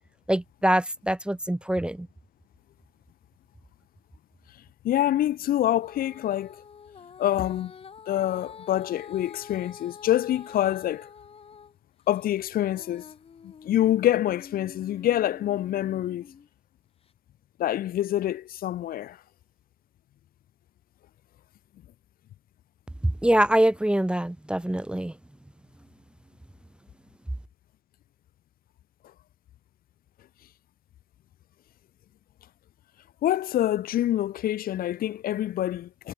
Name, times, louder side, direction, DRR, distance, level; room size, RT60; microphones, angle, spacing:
voice 1, 0.3-2.1 23.0-25.1, right 1 dB, 5° right, 0.7 m, -24 dB
voice 2, 4.8-6.6 7.2-7.7 8.1-11.1 12.1-13.0 13.4-16.3 17.6-19.2 33.2-36.1, left 12 dB, 60° left, 1.0 m, -26 dB
Female singing, 5.8-11.7 12.2-16.5 17.1-17.2, left 6 dB, 35° left, 2.2 m, -47 dB
cardioid pair, 110°, 17 cm